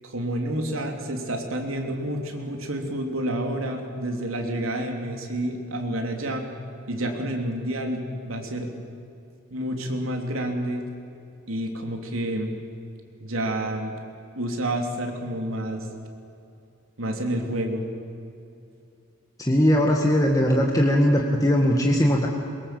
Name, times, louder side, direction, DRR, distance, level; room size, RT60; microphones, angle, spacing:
voice 1, 0.0-6.4 6.9-8.7 9.5-10.9 11.5-12.5 13.2-13.9 14.3-15.9 17.0-17.9, right 1 dB, 85° right, 3 dB, 3.3 m, -29 dB
voice 2, 19.4-22.3, equal, 15° left, 0 dB, 1.7 m, -20 dB
23.5 x 22.0 x 7.8 m, 2.7 s
head